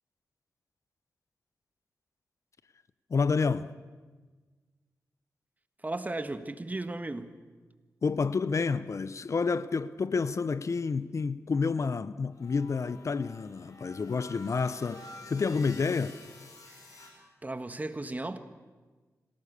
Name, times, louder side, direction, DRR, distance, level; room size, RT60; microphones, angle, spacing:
voice 1, 3.1-3.7 8.0-16.2, left 4 dB, 55° left, 0.8 m, -29 dB
voice 2, 5.8-7.4 16.7-17.0 17.4-18.4, right 2 dB, 25° right, 1.5 m, -36 dB
sound 1, 12.3-17.1, left 2 dB, 70° left, 5.5 m, -50 dB
26.5 x 17.0 x 6.8 m
cardioid pair, 55°, 6 cm